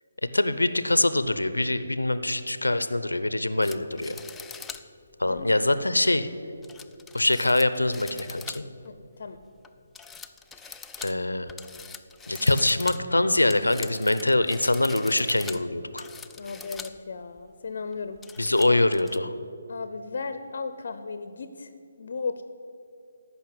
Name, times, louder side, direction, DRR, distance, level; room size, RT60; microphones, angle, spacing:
voice 1, 0.3-4.2 5.2-6.3 7.1-8.6 11.0-11.5 12.3-16.0 18.4-19.3, left 2 dB, 90° left, 12 dB, 0.7 m, -24 dB
sound 1, 3.6-4.9 5.4-5.5 6.6-8.9 9.2-9.7 9.9-17.0 17.4-17.5 17.9-19.2, left 5 dB, 5° left, 0.3 m, -43 dB
voice 2, 5.2-5.5 8.8-9.4 16.4-18.2 18.4-18.9 19.7-21.7 22.0-22.4, left 4 dB, 55° left, 10 dB, 0.7 m, -36 dB
14.5 x 5.8 x 9.0 m, 2.5 s
figure-of-eight pair, 150°, 0 cm